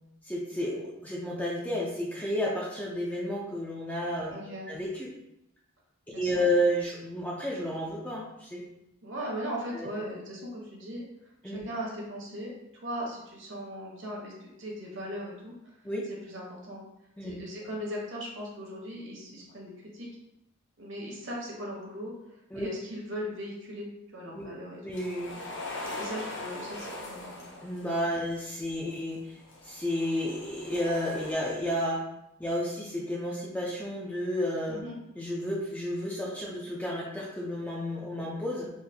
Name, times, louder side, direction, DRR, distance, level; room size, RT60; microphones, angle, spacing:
voice 1, 0.3-4.3 4.7-5.1 6.1-8.6 9.7-9.9 11.4-11.6 15.8-16.0 17.2-17.4 22.5-22.7 24.3-24.5 24.8-25.4 27.6-29.2 29.6-32.0 32.4-34.8 35.2-38.7, equal, 5° left, -4 dB, 0.4 m, -31 dB
voice 2, 4.3-4.7 6.1-6.5 9.0-11.0 11.4-15.7 16.1-16.8 17.2-20.1 20.8-22.1 22.5-23.9 24.1-24.8 25.3-27.5 28.1-28.2 28.8-29.0 34.7-35.0, equal, 55° right, -3 dB, 1.0 m, -39 dB
sound 1, 24.9-28.2 29.1-31.3, left 2 dB, 55° left, 0.6 m, -41 dB
3.8 x 2.5 x 2.7 m, 0.85 s
head